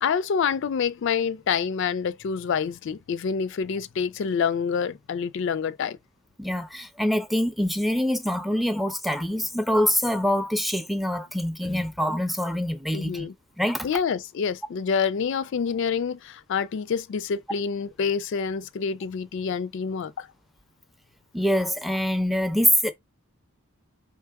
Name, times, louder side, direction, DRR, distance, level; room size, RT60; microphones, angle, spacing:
voice 1, 0.0-6.0 12.9-13.3 13.8-20.3, left 6 dB, 55° left, 0.3 m, -27 dB
voice 2, 6.4-13.3 13.6-13.9 21.3-22.9, equal, ahead, 0.5 m, -25 dB
4.6 x 3.1 x 3.5 m
head